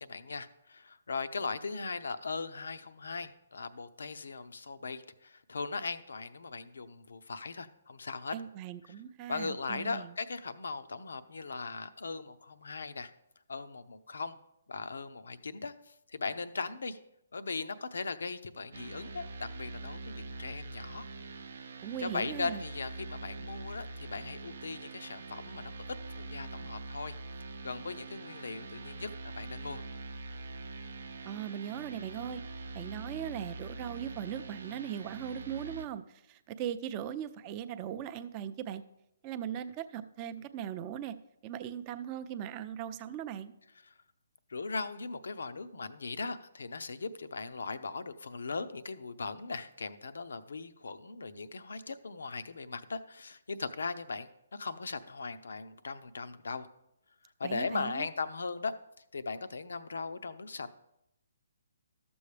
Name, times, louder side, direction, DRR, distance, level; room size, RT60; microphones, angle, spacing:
voice 1, 0.0-8.3 8.9-9.0 9.3-13.1 13.5-14.4 14.7-17.0 17.3-21.1 22.0-27.2 27.6-29.8 44.5-56.7 57.4-58.7 59.1-60.7, left 4 dB, 80° left, 13 dB, 0.6 m, -39 dB
voice 2, 8.3-10.1 21.8-22.6 31.2-32.4 32.7-38.8 39.2-41.1 41.4-43.5 57.4-58.1, right 9 dB, 30° right, 11 dB, 0.5 m, -39 dB
sound 1, 18.7-35.9, right 3 dB, 70° right, 0.6 m, -44 dB
12.5 x 7.0 x 3.3 m, 0.82 s
hypercardioid pair, 150°, 0 cm